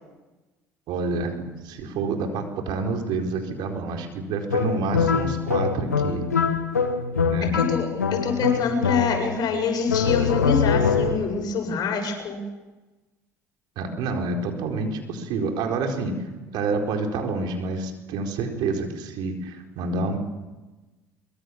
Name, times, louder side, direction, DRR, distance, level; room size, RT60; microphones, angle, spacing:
voice 1, 0.9-6.3 7.3-7.6 13.8-20.2, right 3 dB, 60° right, 3 dB, 4.4 m, -28 dB
sound 1, 4.5-9.5 9.9-11.4, left 5 dB, 90° left, 1.5 m, -24 dB
voice 2, 7.5-12.4, left 5 dB, 50° left, 3 dB, 7.3 m, -25 dB
23.5 x 23.5 x 7.3 m, 1.1 s
figure-of-eight pair, 60°, 9 cm